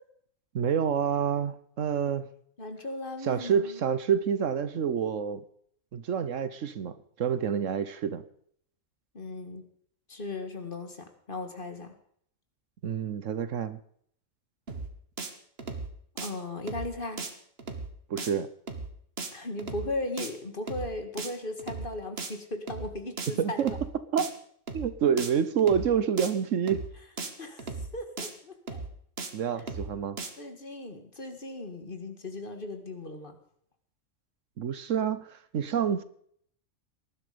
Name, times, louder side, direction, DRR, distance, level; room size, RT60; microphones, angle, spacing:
voice 1, 0.5-2.3 3.2-5.4 5.9-8.2 12.8-13.8 18.1-18.5 23.4-23.7 24.1-24.3 24.7-26.9 29.3-30.2 34.6-36.0, right 7 dB, 70° right, 14 dB, 1.2 m, -28 dB
voice 2, 2.6-3.8 9.1-9.7 10.1-11.9 16.2-17.2 19.3-23.8 27.2-28.9 29.6-29.7 30.4-33.4, left 2 dB, 40° left, 6 dB, 2.1 m, -37 dB
sound 1, 14.7-14.9 15.2-15.3 15.6-15.9 16.2-16.3 16.7-16.9 17.2-17.3 17.6-17.9 18.2-18.3 18.7-18.9 19.2-19.3 19.6-19.9 20.2-20.3 20.7-20.9 21.2-21.3 21.6-21.9 22.2-22.3 22.7-22.9 23.2-23.3 23.6-23.9 24.2-24.3 24.7-24.9 25.2-25.3 25.6-25.9 26.2-26.3 26.7-26.9 27.2-27.3 27.6-27.9 28.2-28.3 28.7-28.9 29.2-29.3 29.6-29.9 30.2-30.3, right 4 dB, 50° right, 1.8 m, -36 dB
19.0 x 11.5 x 5.1 m, 0.64 s
omnidirectional pair, 1.4 m